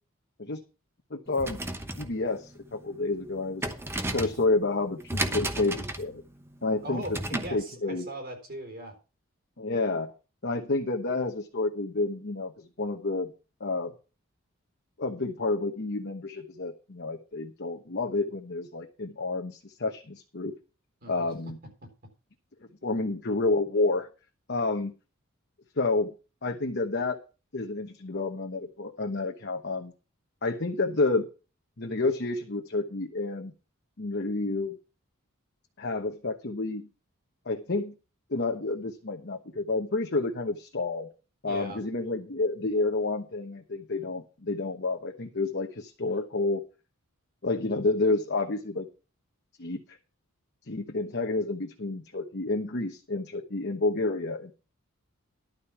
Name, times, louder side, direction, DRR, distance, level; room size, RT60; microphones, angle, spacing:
voice 1, 1.1-1.6 2.0-3.7 4.1-6.2 6.6-7.0 7.3-8.1 9.6-10.1 10.4-13.3 13.6-13.9 15.0-20.5 21.1-21.6 22.8-24.1 24.5-24.9 25.8-26.1 26.4-27.2 27.5-29.9 30.4-31.3 31.8-33.5 34.0-34.8 35.8-36.9 37.4-38.0 38.3-41.1 41.4-46.6 47.4-48.9 49.6-50.0 50.7-54.5, left 3 dB, 50° left, 3 dB, 1.1 m, -29 dB
sound 1, 1.3-7.6, right 1 dB, 10° right, 1.0 m, -35 dB
voice 2, 6.8-8.9 21.0-21.3 21.8-21.9 41.4-41.8, right 1 dB, 45° right, 4 dB, 3.9 m, -39 dB
11.5 x 5.2 x 7.1 m, 0.33 s
head